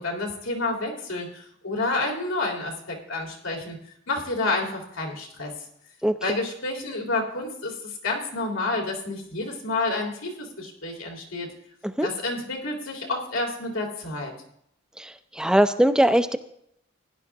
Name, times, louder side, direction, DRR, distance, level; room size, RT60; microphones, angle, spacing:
voice 1, 0.0-3.8 4.1-5.5 6.2-11.5 12.0-14.3, left 2 dB, 90° left, 0 dB, 3.4 m, -29 dB
voice 2, 15.0-16.4, right 1 dB, 5° right, 9 dB, 0.5 m, -21 dB
16.5 x 11.0 x 3.5 m, 0.71 s
head